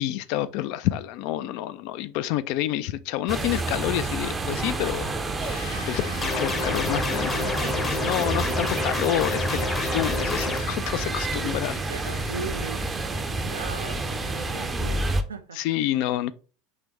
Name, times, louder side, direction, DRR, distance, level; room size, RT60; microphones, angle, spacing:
voice 1, 0.0-5.1 5.9-7.4 7.8-11.8 15.5-16.3, left 14 dB, 55° left, 0.3 m, -28 dB
sound 1, 3.3-15.2, right 2 dB, 20° right, 0.6 m, -29 dB
sound 2, 5.4-13.2, left 4 dB, 75° left, 0.7 m, -41 dB
sound 3, 6.2-10.6, left 3 dB, 25° left, 0.7 m, -29 dB
voice 2, 11.5-12.8 13.3-15.6, right 4 dB, 75° right, 0.5 m, -38 dB
4.8 x 3.3 x 3.0 m
figure-of-eight pair, 75°, 0 cm